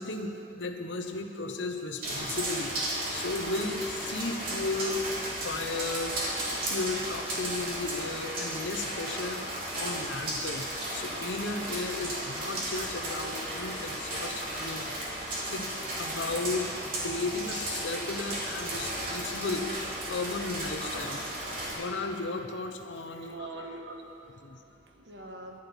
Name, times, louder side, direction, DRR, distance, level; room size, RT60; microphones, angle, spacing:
voice 1, 0.0-2.7 3.1-5.1 5.4-6.2 6.7-14.9 15.5-15.7 16.0-16.7 17.0-23.5 24.4-24.6, left 3 dB, 80° left, 6 dB, 1.1 m, -35 dB
sound 1, 2.0-21.7, right 1 dB, 50° right, 3.5 m, -34 dB
voice 2, 23.2-25.6, right 2 dB, 65° right, 2 dB, 1.6 m, -44 dB
11.5 x 8.2 x 9.9 m, 2.8 s
head